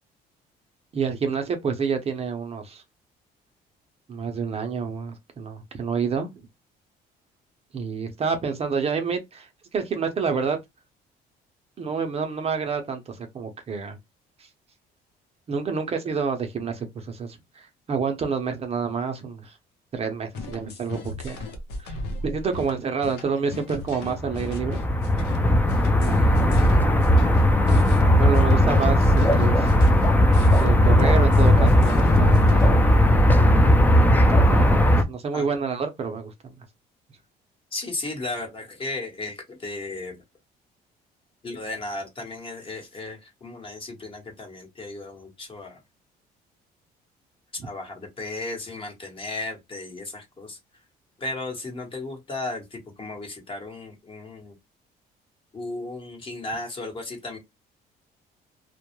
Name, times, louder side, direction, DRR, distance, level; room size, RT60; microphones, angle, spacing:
voice 1, 0.9-2.8 4.1-6.3 7.7-10.6 11.8-14.0 15.5-19.5 19.9-21.4 21.8-22.0 22.2-24.8 26.0-26.8 27.7-27.8 28.1-29.7 30.6-32.8 34.3-36.3, right 5 dB, 35° right, 0.5 m, -28 dB
sound 1, 20.3-32.7, left 2 dB, 85° left, 0.7 m, -36 dB
sound 2, 24.1-35.0, left 1 dB, 10° left, 0.4 m, -17 dB
voice 2, 37.7-40.2 41.4-45.8 47.6-50.6 51.2-54.6 55.5-57.4, left 2 dB, 30° left, 1.1 m, -35 dB
2.2 x 2.1 x 2.9 m
cardioid pair, 110°, 17 cm